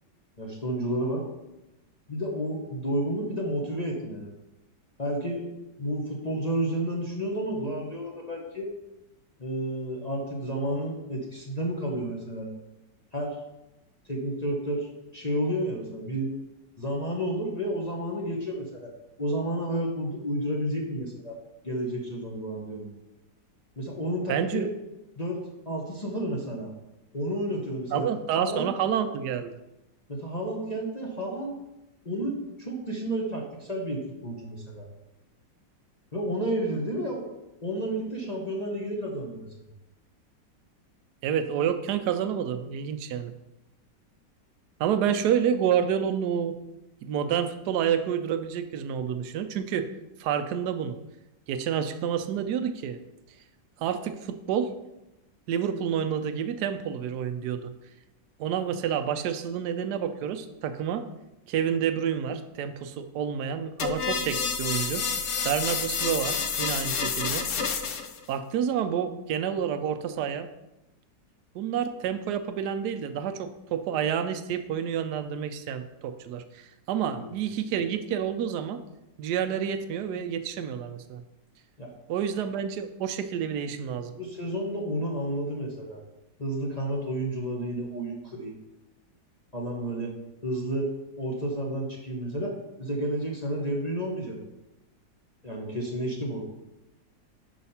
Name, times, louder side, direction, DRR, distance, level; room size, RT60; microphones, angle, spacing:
voice 1, 0.4-1.2 2.1-4.3 5.0-5.4 5.8-8.7 9.4-12.5 13.1-13.4 14.1-16.3 16.8-18.9 19.2-21.4 21.6-22.9 23.8-24.7 25.2-25.4 25.6-26.7 27.1-28.0 28.4-28.7 30.1-31.5 32.0-34.9 36.1-37.3 37.6-39.5 77.1-77.2 81.8-81.9 84.1-86.0 86.4-88.5 89.5-90.1 90.4-90.9 91.2-94.4 95.4-96.6, right 1 dB, 30° left, -2 dB, 0.8 m, -31 dB
voice 2, 24.3-24.7 27.9-29.6 41.2-43.3 44.8-46.6 47.0-49.9 50.2-51.0 51.5-53.0 53.8-54.7 55.5-57.7 58.4-61.1 61.5-65.0 65.4-67.5 68.3-70.5 71.5-78.8 79.2-81.2 82.1-84.1, right 8 dB, 70° right, 9 dB, 1.0 m, -29 dB
sound 1, 63.8-68.2, left 6 dB, 65° left, 0.7 m, -29 dB
5.6 x 5.1 x 5.6 m, 0.94 s
omnidirectional pair, 2.0 m